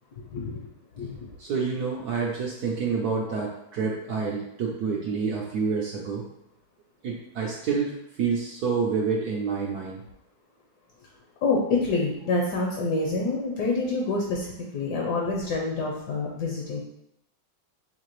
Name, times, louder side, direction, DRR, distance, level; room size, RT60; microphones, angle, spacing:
voice 1, 1.4-6.2 7.0-10.0, right 5 dB, 70° right, -2 dB, 1.0 m, -28 dB
voice 2, 11.4-16.8, left 3 dB, 65° left, -1 dB, 1.2 m, -27 dB
5.8 x 2.8 x 3.0 m, 0.81 s
omnidirectional pair, 2.1 m